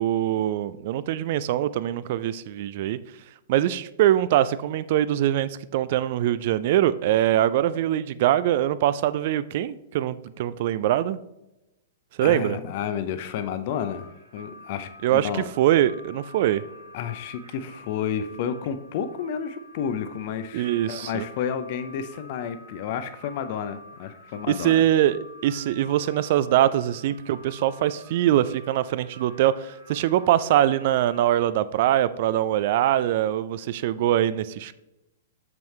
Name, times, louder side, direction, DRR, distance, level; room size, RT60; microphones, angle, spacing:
voice 1, 0.0-3.0 3.5-11.2 12.2-12.6 15.0-16.6 20.5-21.2 24.5-34.7, right 12 dB, 50° right, 15 dB, 0.4 m, -23 dB
voice 2, 12.2-15.5 16.9-24.8, left 8 dB, 45° left, 11 dB, 0.6 m, -31 dB
sound 1, 13.7-31.5, left 1 dB, 75° right, 2.0 m, -48 dB
7.1 x 6.0 x 3.2 m, 0.91 s
figure-of-eight pair, 105°, 0 cm